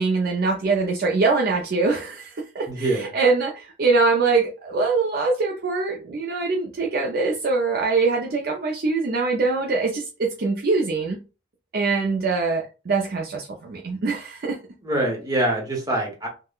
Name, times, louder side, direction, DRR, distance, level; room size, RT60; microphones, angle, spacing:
voice 1, 0.0-11.2 11.7-14.6, right 4 dB, 50° right, 0.4 m, -23 dB
voice 2, 2.7-3.1 14.8-16.3, right 1 dB, 20° right, 0.8 m, -24 dB
3.5 x 2.1 x 2.3 m
head